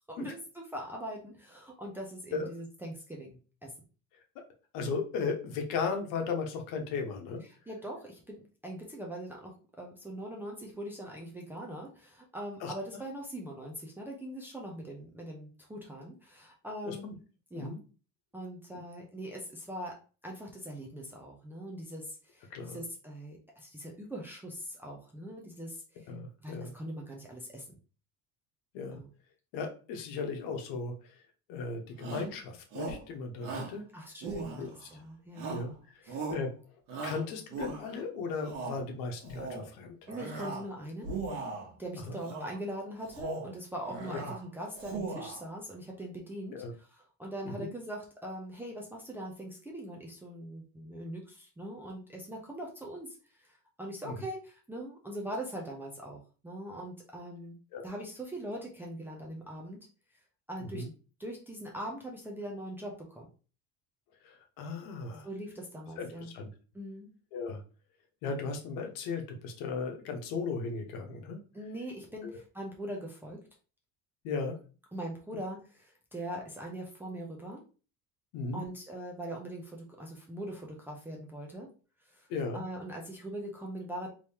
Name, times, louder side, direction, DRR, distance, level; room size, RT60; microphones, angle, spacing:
voice 1, 0.1-3.7 7.7-17.2 17.5-17.7 18.3-20.0 20.2-26.1 26.4-27.6 28.9-29.1 33.9-35.6 36.0-36.3 40.1-41.1 41.8-57.6 57.8-59.9 60.5-60.8 61.2-63.3 65.2-66.3 66.7-67.1 71.5-73.4 74.9-77.6 78.5-81.7 82.1-82.3 82.5-84.1, right 1 dB, 5° right, -2 dB, 0.4 m, -42 dB
voice 2, 4.7-7.4 12.6-12.7 16.9-17.1 17.5-17.8 22.5-22.8 26.1-26.7 28.7-29.0 29.5-31.2 31.5-33.8 34.5-34.9 35.5-36.0 36.3-36.5 37.0-40.0 42.0-42.2 44.1-44.2 46.5-46.7 47.4-47.7 54.0-54.1 57.7-57.8 60.6-60.9 64.2-65.3 66.0-66.5 67.3-67.6 68.2-71.4 72.2-72.3 74.2-74.6 78.3-78.6 82.3-82.6, left 4 dB, 75° left, 4 dB, 1.0 m, -36 dB
Shout, 32.0-32.3 32.7-33.1 33.4-33.8 34.2-34.9 35.4-35.7 36.1-36.5 36.9-38.0 38.4-38.8 39.2-39.7 40.1-40.7 41.0-41.7 42.2-42.6 43.0-43.5 43.9-44.4 44.7-45.4, right 3 dB, 65° right, 1.2 m, -39 dB
3.5 x 3.0 x 2.8 m, 0.36 s
cardioid pair, 175°, 34 cm